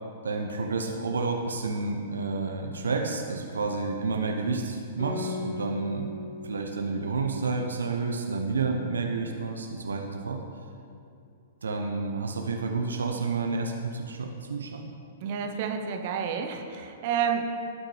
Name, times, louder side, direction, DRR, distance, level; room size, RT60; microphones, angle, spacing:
voice 1, 0.2-6.1 6.4-10.4 11.6-14.8, right 4 dB, 70° right, 3 dB, 0.8 m, -30 dB
Guitar, 5.0-9.9, left 3 dB, 55° left, 2.1 m, -40 dB
voice 2, 15.2-17.4, right 7 dB, 45° right, 4 dB, 0.9 m, -29 dB
17.5 x 6.3 x 3.3 m, 2.5 s
figure-of-eight pair, 105°, 0 cm